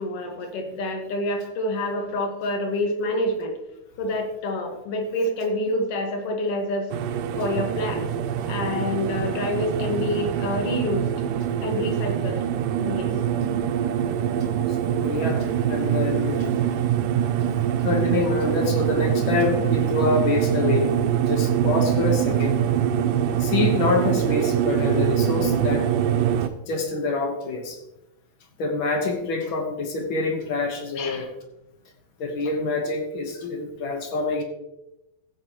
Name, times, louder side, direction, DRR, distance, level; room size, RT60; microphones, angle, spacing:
voice 1, 0.0-3.6 4.0-6.9 7.4-8.1 8.5-11.1 11.6-12.5 12.8-13.1 31.0-31.3, left 1 dB, 55° left, 3 dB, 2.0 m, -27 dB
sound 1, 6.9-26.5, right 10 dB, 85° right, 2.2 m, -24 dB
voice 2, 14.7-16.5 17.8-21.0 21.3-22.6 23.4-25.9 26.7-27.8 28.6-31.3 32.2-34.4, left 3 dB, 85° left, 4 dB, 1.1 m, -26 dB
15.5 x 8.8 x 2.9 m, 0.92 s
omnidirectional pair, 3.9 m